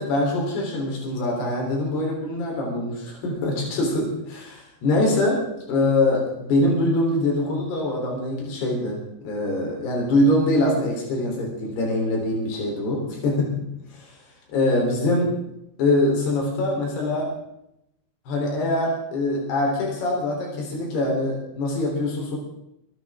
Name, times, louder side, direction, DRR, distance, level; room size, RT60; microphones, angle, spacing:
voice 1, 0.0-5.4 5.7-9.0 9.2-13.5 13.9-14.2 14.5-15.4 15.8-17.3 18.3-22.4, left 1 dB, 75° left, -1 dB, 6.0 m, -23 dB
24.0 x 12.5 x 3.8 m, 0.80 s
omnidirectional pair, 4.7 m